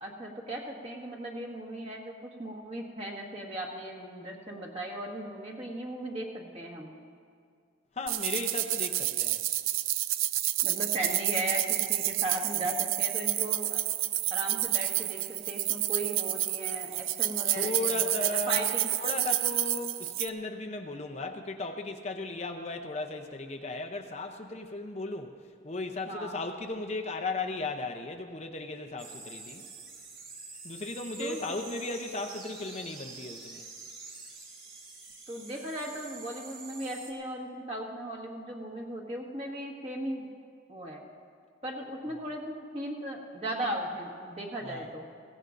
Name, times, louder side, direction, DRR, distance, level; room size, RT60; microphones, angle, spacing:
voice 1, 0.0-6.9 10.6-13.8 14.3-18.9 26.1-26.3 31.2-31.4 35.3-40.3 40.7-41.0 41.6-45.1, right 1 dB, 30° right, 0 dB, 1.6 m, -37 dB
voice 2, 8.0-9.4 17.6-18.7 18.9-25.3 25.6-29.6 30.6-33.6 44.6-44.9, left 2 dB, 35° left, 4 dB, 0.6 m, -36 dB
sound 1, 8.1-20.3, right 15 dB, 85° right, 0.4 m, -29 dB
sound 2, 29.0-37.1, right 4 dB, 45° right, 2.4 m, -46 dB
22.0 x 16.5 x 2.6 m, 2.1 s
head